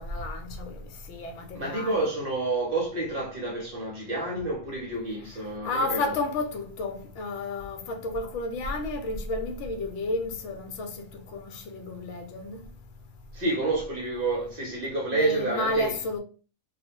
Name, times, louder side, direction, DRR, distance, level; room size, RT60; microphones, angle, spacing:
voice 1, 0.0-2.1 5.6-12.6 15.1-16.2, left 2 dB, 70° left, 0.9 m, -32 dB
voice 2, 1.5-6.1 13.3-16.0, right 2 dB, 55° right, 0.7 m, -29 dB
2.4 x 2.0 x 2.8 m
omnidirectional pair, 1.4 m